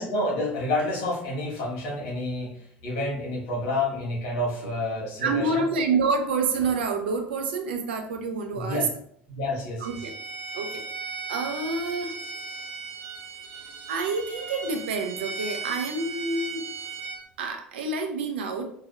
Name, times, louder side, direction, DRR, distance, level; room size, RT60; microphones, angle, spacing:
voice 1, 0.0-5.7 8.5-8.9 9.3-10.0, left 1 dB, 60° left, -4 dB, 1.4 m, -29 dB
voice 2, 5.2-8.8 9.8-10.1 10.5-10.8 11.3-12.1 13.9-16.7 17.4-18.6, right 3 dB, 75° right, 4 dB, 0.4 m, -28 dB
Bowed string instrument, 9.8-17.2, right 4 dB, 45° right, 0.9 m, -37 dB
4.2 x 2.3 x 2.4 m, 0.67 s
figure-of-eight pair, 70°, 6 cm